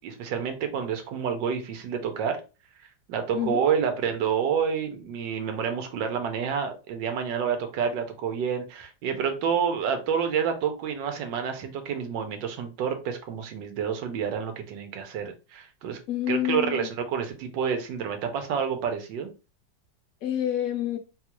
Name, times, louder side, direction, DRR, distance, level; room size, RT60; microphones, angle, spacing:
voice 1, 0.0-2.4 2.8-16.0 16.3-19.3, right 7 dB, 85° right, 1.4 m, -29 dB
voice 2, 16.1-16.9 20.2-21.0, left 11 dB, 70° left, 0.8 m, -28 dB
3.9 x 2.3 x 2.9 m
omnidirectional pair, 2.0 m